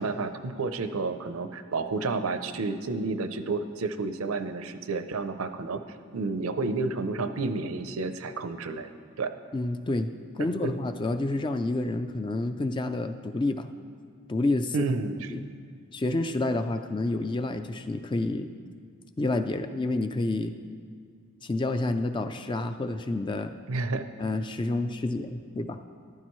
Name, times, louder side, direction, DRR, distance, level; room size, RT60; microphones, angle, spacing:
voice 1, 0.0-5.8 6.1-8.9 9.2-9.3 10.6-10.7 14.7-15.2 23.7-24.1, right 3 dB, 85° right, 10 dB, 0.6 m, -30 dB
voice 2, 9.5-13.7 14.3-14.9 15.3-15.5 15.9-18.5 19.2-20.5 21.4-23.5 24.2-25.8, left 2 dB, 20° left, 8 dB, 0.3 m, -29 dB
14.0 x 11.5 x 3.1 m, 2.1 s
head